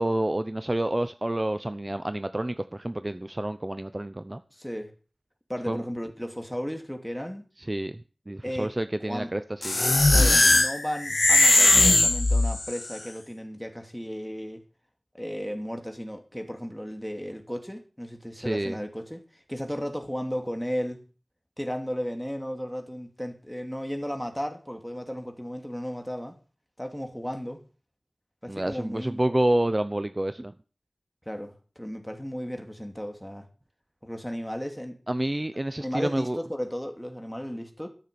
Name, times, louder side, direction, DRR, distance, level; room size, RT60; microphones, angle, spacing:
voice 1, 0.0-4.4 5.7-5.8 7.7-9.8 18.4-18.8 28.5-30.5 35.1-36.4, right 1 dB, 30° right, 0.7 m, -28 dB
voice 2, 4.5-4.9 5.5-7.5 8.4-8.7 9.0-9.3 10.1-14.6 15.1-21.0 21.6-26.4 26.8-27.6 28.4-29.2 31.3-33.5 34.0-35.0 35.8-37.9, equal, 5° left, 2.6 m, -34 dB
sound 1, 9.6-12.9, left 2 dB, 50° left, 0.6 m, -19 dB
13.5 x 7.4 x 6.9 m
wide cardioid pair, 60°, 0 cm